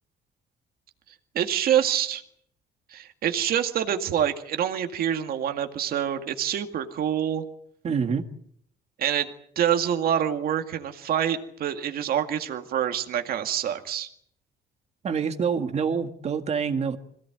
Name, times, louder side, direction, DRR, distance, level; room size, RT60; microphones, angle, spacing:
voice 1, 1.3-2.2 2.9-7.4 9.0-9.3 9.6-14.1, right 9 dB, 60° right, 6 dB, 2.1 m, -26 dB
voice 2, 7.8-8.2 15.0-17.0, right 6 dB, 40° right, 6 dB, 2.0 m, -26 dB
26.0 x 17.5 x 9.2 m, 0.67 s
cardioid pair, 170°, 18 cm